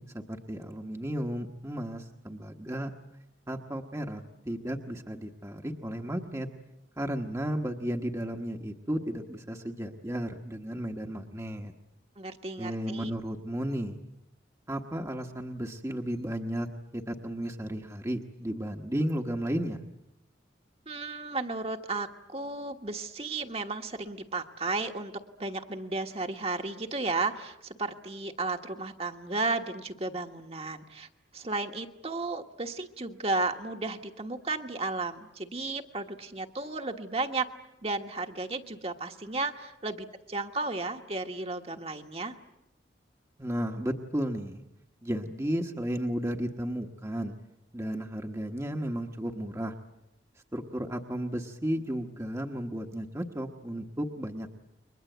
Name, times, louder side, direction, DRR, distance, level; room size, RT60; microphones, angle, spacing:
voice 1, 0.0-2.9 3.5-6.5 7.0-11.7 12.6-14.0 14.7-16.7 16.9-19.8 43.4-44.6 45.0-47.3 47.7-49.7 50.5-54.5, equal, 15° right, 2 dB, 1.2 m, -34 dB
voice 2, 12.2-13.1 20.9-25.1 25.4-31.1 31.3-37.5 37.8-42.4, right 3 dB, 35° right, 4 dB, 1.4 m, -34 dB
30.0 x 23.0 x 8.0 m, 0.87 s
head